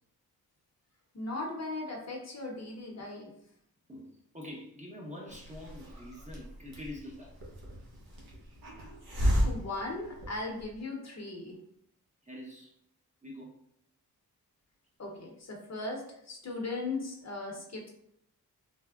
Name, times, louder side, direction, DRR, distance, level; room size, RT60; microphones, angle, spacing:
voice 1, 1.1-3.3 9.3-11.6 15.0-17.9, left 2 dB, 45° left, 0 dB, 0.8 m, -38 dB
voice 2, 3.9-7.4 12.2-12.7 13.2-13.5, left 1 dB, 20° right, -3 dB, 0.7 m, -45 dB
Hiss, 5.3-10.8, equal, 70° right, 0.9 m, -34 dB
3.3 x 2.1 x 2.3 m, 0.71 s
cardioid pair, 65°, 39 cm